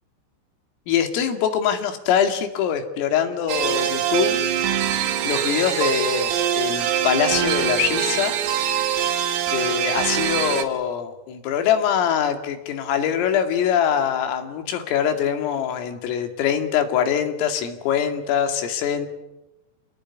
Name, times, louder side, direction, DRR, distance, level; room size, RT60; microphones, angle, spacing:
voice 1, 0.9-4.4 5.2-8.3 9.5-19.1, left 8 dB, 85° left, 7 dB, 5.0 m, -23 dB
sound 1, 3.5-10.6, right 10 dB, 80° right, 4.7 m, -23 dB
29.0 x 19.0 x 9.8 m, 0.98 s
omnidirectional pair, 5.8 m